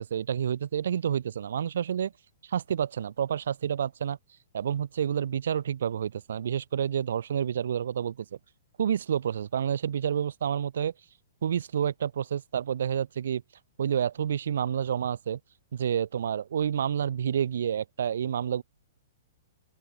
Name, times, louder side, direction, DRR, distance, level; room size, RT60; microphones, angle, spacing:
voice 1, 0.0-2.1 2.5-4.2 4.5-8.2 8.8-10.9 11.4-13.4 13.8-15.4 15.7-18.6, right 8 dB, 65° right, 4.8 m, -29 dB
open air
hypercardioid pair, 175°, 0 cm